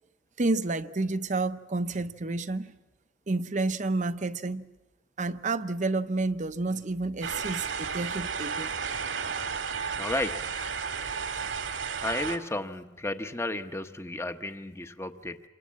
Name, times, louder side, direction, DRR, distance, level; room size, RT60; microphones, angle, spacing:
voice 1, 0.4-2.8 3.3-4.7 5.2-8.7, right 3 dB, 40° right, 0.8 m, -30 dB
sound 1, 7.2-12.4, right 6 dB, 75° right, 2.0 m, -33 dB
voice 2, 10.0-10.5 12.0-15.4, left 2 dB, 15° left, 0.9 m, -33 dB
27.0 x 24.0 x 7.5 m
head